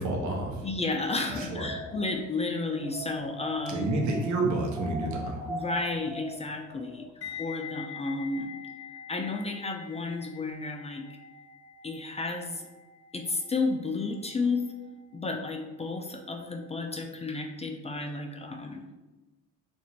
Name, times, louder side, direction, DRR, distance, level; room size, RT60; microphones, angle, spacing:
voice 1, 0.0-0.7 1.4-1.7 3.7-5.4, right 2 dB, 70° right, 1 dB, 0.9 m, -29 dB
voice 2, 0.6-3.9 5.5-7.1 7.4-8.5 9.1-11.1 11.8-12.7 13.1-14.7 15.1-18.9, left 3 dB, 20° left, 3 dB, 0.4 m, -32 dB
Wind, 1.1-7.1, right 1 dB, 15° right, 0.8 m, -41 dB
sound 1, 7.2-16.2 16.4-16.7, left 7 dB, 50° left, 1.0 m, -46 dB
2.9 x 2.5 x 4.2 m, 1.1 s
cardioid pair, 90°, 30 cm